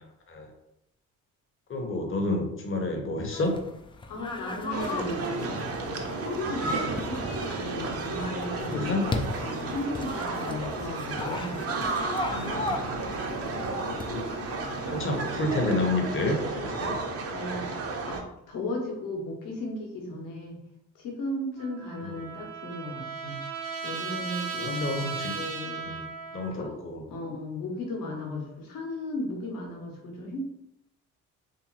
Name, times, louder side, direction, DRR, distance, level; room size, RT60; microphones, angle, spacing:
voice 1, 1.7-3.6 8.6-9.1 12.3-12.8 13.9-14.3 14.8-17.0 22.0-22.2 24.6-25.4 25.8-25.9 26.3-27.0, left 2 dB, 30° left, 2 dB, 1.0 m, -30 dB
sound 1, 3.3-15.4, left 2 dB, 15° left, 0.4 m, -38 dB
voice 2, 4.1-5.3 5.8-8.9 9.4-11.6 17.3-18.2 18.5-20.6 20.9-23.4 23.8-25.0 25.3-26.0 26.5-26.8 27.1-30.4, left 1 dB, 55° left, 0 dB, 1.2 m, -35 dB
sound 2, 4.7-18.2, right 3 dB, 35° right, 0.7 m, -32 dB
Trumpet, 21.6-26.7, right 5 dB, 75° right, 0.8 m, -36 dB
3.5 x 2.8 x 3.0 m, 0.82 s
figure-of-eight pair, 45°, 41 cm